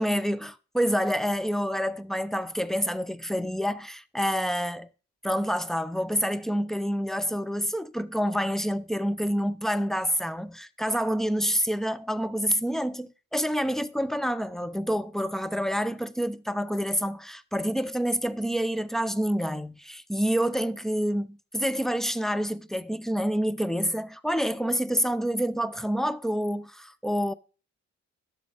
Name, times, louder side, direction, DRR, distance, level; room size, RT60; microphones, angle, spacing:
voice 1, 0.0-4.9 5.2-27.3, equal, ahead, 0.5 m, -28 dB
11.5 x 6.9 x 3.9 m
cardioid pair, 90°, 30 cm